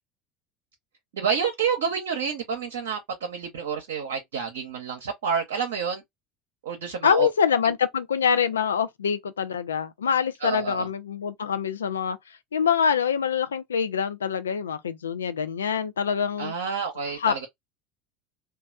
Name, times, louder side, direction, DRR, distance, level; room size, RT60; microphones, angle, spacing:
voice 1, 1.1-6.0 6.6-7.3 10.4-10.9 16.4-17.5, right 6 dB, 70° right, 0.7 m, -29 dB
voice 2, 7.0-16.5 17.2-17.5, left 7 dB, 80° left, 0.4 m, -25 dB
3.0 x 2.3 x 2.2 m
figure-of-eight pair, 70°, 0 cm